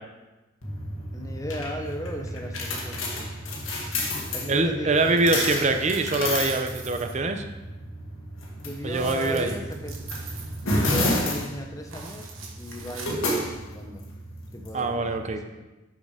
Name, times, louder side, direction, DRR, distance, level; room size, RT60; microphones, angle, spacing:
sound 1, 0.6-15.3, left 1 dB, 80° left, 1.7 m, -31 dB
voice 1, 1.1-3.3 4.3-5.7 8.5-10.1 10.5-14.0 14.5-15.7, equal, 15° left, 3 dB, 0.7 m, -36 dB
voice 2, 4.5-7.4 8.8-9.5 14.7-15.4, right 3 dB, 35° right, 6 dB, 0.6 m, -24 dB
sound 2, 6.5-7.2 8.8-11.2 11.8-13.4, right 5 dB, 80° right, 1.4 m, -43 dB
6.6 x 6.4 x 5.0 m, 1.1 s
head